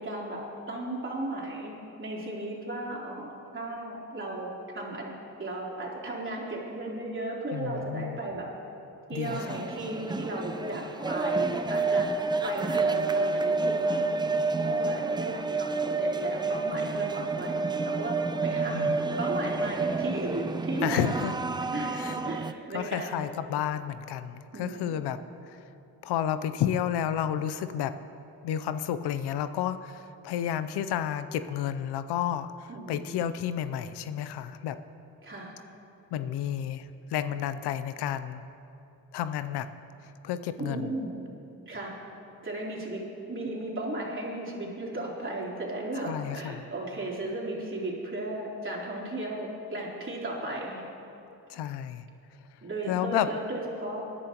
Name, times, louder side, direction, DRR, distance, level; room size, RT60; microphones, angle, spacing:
voice 1, 0.0-1.7 2.0-5.1 5.4-8.5 9.1-18.2 18.4-21.0 21.7-23.3 24.5-25.0 32.7-33.3 35.2-35.5 40.6-41.2 41.7-41.9 42.4-43.0 43.3-50.8 52.6-54.0, right 2 dB, 30° right, -4 dB, 3.4 m, -35 dB
voice 2, 7.5-8.2 9.1-9.6 18.7-19.2 20.8-21.3 21.9-22.2 22.7-25.2 25.5-25.6 26.0-27.9 28.4-34.8 36.1-38.4 39.1-39.7 40.2-40.9 46.1-46.6 51.5-52.0 52.9-53.3, left 10 dB, 80° left, 12 dB, 0.6 m, -31 dB
sound 1, 9.2-22.5, right 3 dB, 10° right, 0.4 m, -29 dB
20.0 x 11.0 x 2.9 m, 2.8 s
cardioid pair, 75°, 39 cm